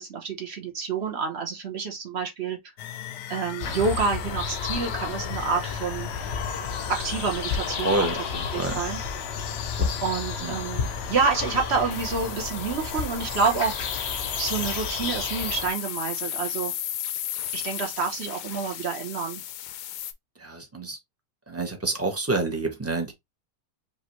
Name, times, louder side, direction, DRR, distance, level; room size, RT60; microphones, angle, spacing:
voice 1, 0.0-2.6 3.3-6.1 6.9-8.1 8.5-9.0 10.0-13.8 14.4-16.7 17.5-19.4, right 5 dB, 45° right, 1.0 m, -28 dB
sound 1, 2.8-20.1, left 11 dB, 75° left, 1.1 m, -36 dB
sound 2, 3.6-15.7, left 5 dB, 50° left, 0.8 m, -32 dB
voice 2, 7.8-8.8 9.8-10.0 10.4-10.6 20.4-21.0 21.5-23.1, right 2 dB, 15° right, 0.6 m, -28 dB
5.3 x 2.7 x 2.9 m
omnidirectional pair, 1.9 m